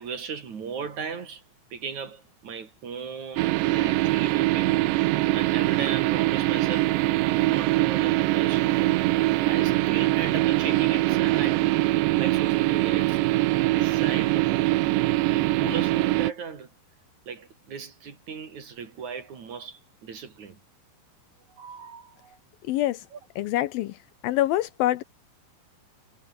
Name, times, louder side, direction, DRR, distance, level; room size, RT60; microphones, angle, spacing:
voice 1, 0.0-1.4 1.7-6.9 7.2-9.1 9.4-11.7 12.2-13.2 13.7-14.6 15.3-16.7 17.3-20.6 21.5-22.4 23.1-23.2, right 6 dB, 45° right, 4.1 m, -37 dB
sound 1, 3.4-16.3, right 18 dB, 85° right, 3.0 m, -23 dB
voice 2, 22.6-23.1 23.4-24.0 24.2-25.0, left 14 dB, 80° left, 2.2 m, -25 dB
omnidirectional pair, 5.0 m